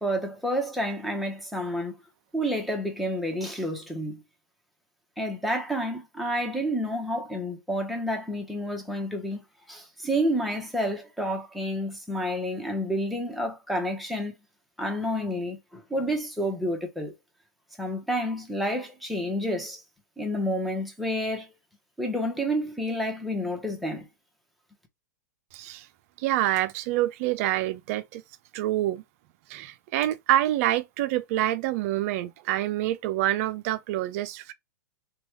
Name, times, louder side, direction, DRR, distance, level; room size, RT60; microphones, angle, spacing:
voice 1, 0.0-2.0 2.3-4.2 5.2-9.4 9.7-14.3 14.8-17.1 17.8-19.8 20.2-21.5 22.0-24.1, equal, ahead, 0.9 m, -29 dB
voice 2, 25.5-25.9 26.2-28.2 28.5-29.0 29.5-34.5, right 14 dB, 50° right, 0.4 m, -27 dB
3.0 x 2.3 x 3.0 m
hypercardioid pair, 115°, 10 cm